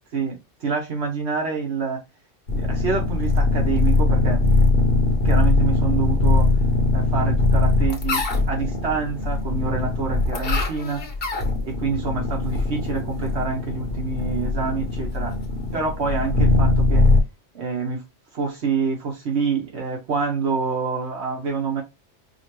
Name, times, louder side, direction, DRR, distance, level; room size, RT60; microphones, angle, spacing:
voice 1, 0.1-2.0 2.5-4.4 5.2-6.5 6.9-11.0 11.6-15.4 15.7-17.1 17.5-18.0 18.3-21.8, right 5 dB, 70° right, 1.2 m, -27 dB
sound 1, 2.5-17.2, left 2 dB, 55° left, 1.0 m, -21 dB
4.9 x 2.2 x 3.0 m
omnidirectional pair, 1.2 m